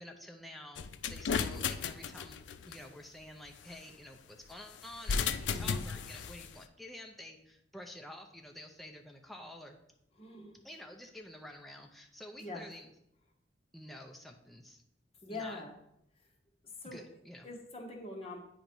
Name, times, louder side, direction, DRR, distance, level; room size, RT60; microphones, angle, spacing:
voice 1, 0.0-2.4 2.6-9.8 10.6-12.9 13.7-14.8 15.3-15.6 16.8-17.5, left 1 dB, ahead, 1 dB, 0.5 m, -49 dB
sound 1, 0.8-2.8 4.9-6.5, left 6 dB, 80° left, 0.4 m, -34 dB
voice 2, 5.5-5.8 10.2-10.6 12.4-12.7 15.2-15.7 16.8-17.0 17.4-18.4, left 2 dB, 35° left, 0 dB, 1.3 m, -43 dB
8.8 x 3.0 x 5.3 m, 0.79 s
head